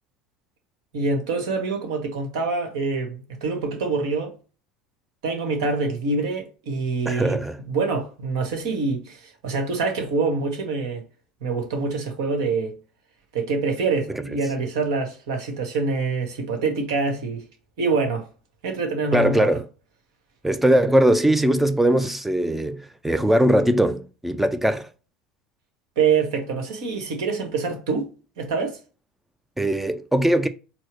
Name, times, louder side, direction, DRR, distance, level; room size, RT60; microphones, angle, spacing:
voice 1, 0.9-4.4 5.2-11.0 11.4-12.7 13.3-17.4 17.8-18.3 18.6-19.5 26.0-28.1 28.4-28.8, right 4 dB, 65° right, 1.3 m, -25 dB
voice 2, 7.1-7.6 14.1-14.2 19.1-19.6 20.4-24.9 29.6-30.5, right 1 dB, 5° right, 0.5 m, -20 dB
4.4 x 2.0 x 4.4 m
figure-of-eight pair, 70°, 3 cm